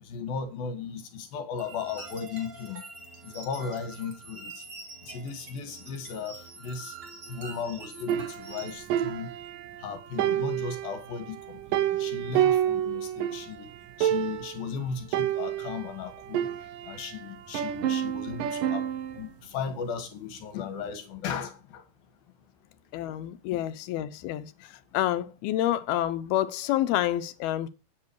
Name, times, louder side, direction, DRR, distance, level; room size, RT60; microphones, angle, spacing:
voice 1, 0.1-2.8 3.2-4.6 5.1-6.9 7.3-9.3 9.8-11.4 11.9-13.7 14.0-16.5 16.9-18.8 19.1-21.8 23.5-23.6, left 6 dB, 75° left, 3.5 m, -36 dB
sound 1, 1.6-8.7, right 3 dB, 35° right, 3.5 m, -45 dB
sound 2, 8.1-9.8 10.2-13.5 13.7-13.8 14.0-14.6 15.1-17.1 17.5-19.2, right 11 dB, 70° right, 2.5 m, -29 dB
voice 2, 22.9-24.5 24.9-27.7, left 13 dB, 90° left, 2.9 m, -28 dB
9.8 x 8.4 x 4.8 m
omnidirectional pair, 4.3 m